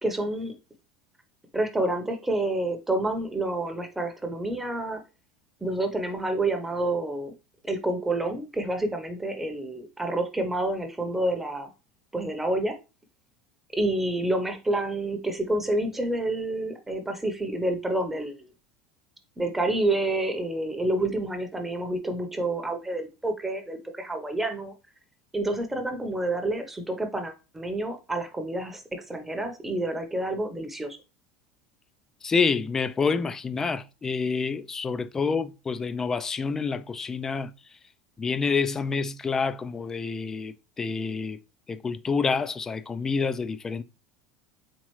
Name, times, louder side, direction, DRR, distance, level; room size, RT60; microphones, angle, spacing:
voice 1, 0.0-0.6 1.5-5.0 5.6-7.3 7.6-11.7 12.1-12.8 13.7-18.5 19.4-24.7 25.3-31.0, right 1 dB, 10° right, 0.8 m, -28 dB
voice 2, 32.2-37.5 38.2-41.4 41.7-43.8, left 5 dB, 20° left, 0.4 m, -28 dB
4.4 x 3.6 x 3.1 m
supercardioid pair, 105°, 2 cm